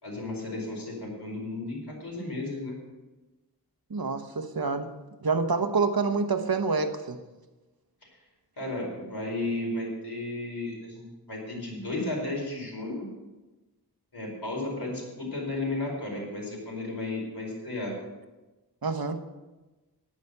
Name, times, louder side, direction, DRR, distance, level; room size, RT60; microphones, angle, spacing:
voice 1, 0.0-2.7 8.6-13.0 14.1-17.9, left 2 dB, 75° left, -2 dB, 4.7 m, -34 dB
voice 2, 3.9-4.9 5.2-7.2 18.8-19.2, right 4 dB, 65° right, 8 dB, 1.1 m, -27 dB
10.5 x 9.7 x 6.7 m, 1.1 s
wide cardioid pair, 55°, 39 cm